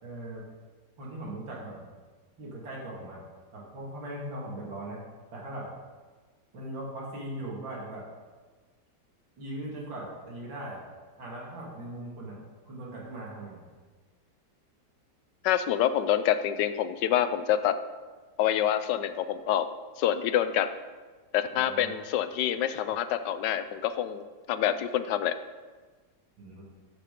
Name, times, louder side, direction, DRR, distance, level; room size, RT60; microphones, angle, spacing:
voice 1, 0.0-0.4 1.0-1.8 2.4-3.2 3.5-5.0 5.3-5.7 6.5-8.1 9.4-10.8 11.2-12.4 12.6-13.6 21.5-21.9 26.4-26.6, right 1 dB, 85° right, -4 dB, 2.9 m, -39 dB
voice 2, 15.4-17.8 18.4-19.7 20.0-20.7 21.3-24.2 24.5-25.4, left 10 dB, 75° left, 12 dB, 1.2 m, -26 dB
12.5 x 5.9 x 5.1 m, 1.4 s
omnidirectional pair, 2.0 m